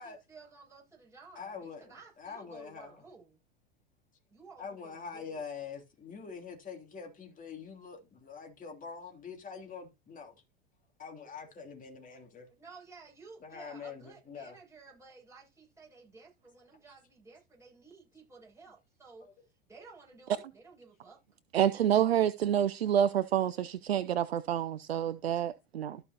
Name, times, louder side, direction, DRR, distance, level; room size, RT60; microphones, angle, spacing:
voice 1, 0.0-3.4 4.3-5.5 12.5-19.3 19.7-21.2, right 4 dB, 10° right, 6.4 m, -54 dB
voice 2, 1.3-3.0 4.6-10.3 11.0-12.5 13.4-14.6 19.2-19.3, left 5 dB, 25° left, 3.0 m, -45 dB
voice 3, 21.5-26.0, right 10 dB, 85° right, 0.6 m, -28 dB
14.0 x 5.5 x 2.9 m
hypercardioid pair, 90°, 30 cm